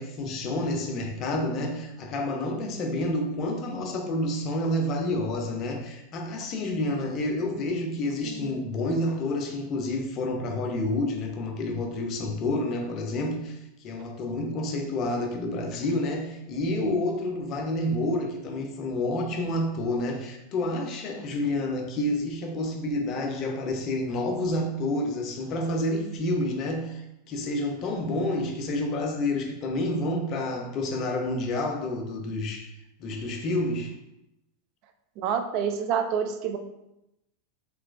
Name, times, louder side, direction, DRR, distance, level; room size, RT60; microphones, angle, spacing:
voice 1, 0.0-32.7 33.0-33.9, left 1 dB, 40° left, 2 dB, 0.6 m, -29 dB
voice 2, 8.2-8.7 35.2-36.6, right 7 dB, 50° right, 6 dB, 0.4 m, -28 dB
3.1 x 3.0 x 2.5 m, 0.89 s
hypercardioid pair, 90°, 0 cm